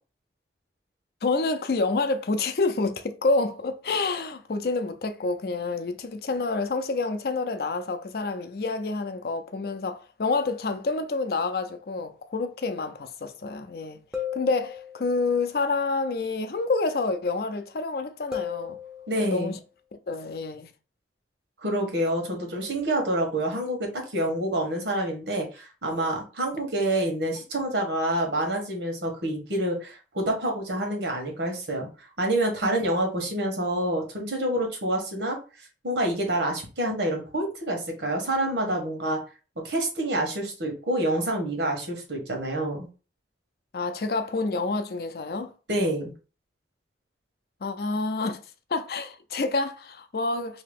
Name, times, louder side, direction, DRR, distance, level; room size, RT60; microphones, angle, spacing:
voice 1, 1.2-14.0 14.3-18.8 19.2-19.6 19.9-20.7 43.7-45.5 47.6-48.4 48.7-50.6, left 3 dB, 60° left, 0.5 m, -28 dB
sound 1, 14.1-15.3 18.3-19.4, left 8 dB, 5° right, 0.5 m, -35 dB
voice 2, 19.1-19.5 21.6-31.9 32.2-35.4 35.8-39.2 39.6-42.9 45.7-46.1, right 1 dB, 80° right, 1.2 m, -27 dB
2.8 x 2.8 x 3.5 m
head